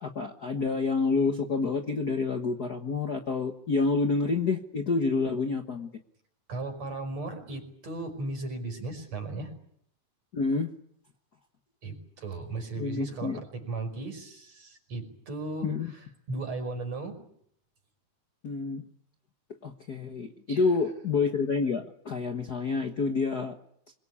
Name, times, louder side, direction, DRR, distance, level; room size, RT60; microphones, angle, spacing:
voice 1, 0.0-5.9 10.3-10.7 12.8-13.4 15.6-15.9 18.4-18.8 19.6-23.6, left 4 dB, 45° left, 5 dB, 1.4 m, -28 dB
voice 2, 6.5-9.5 11.8-17.2 20.5-20.6, right 2 dB, 60° right, 4 dB, 6.5 m, -36 dB
26.0 x 22.5 x 8.5 m, 0.69 s
omnidirectional pair, 3.4 m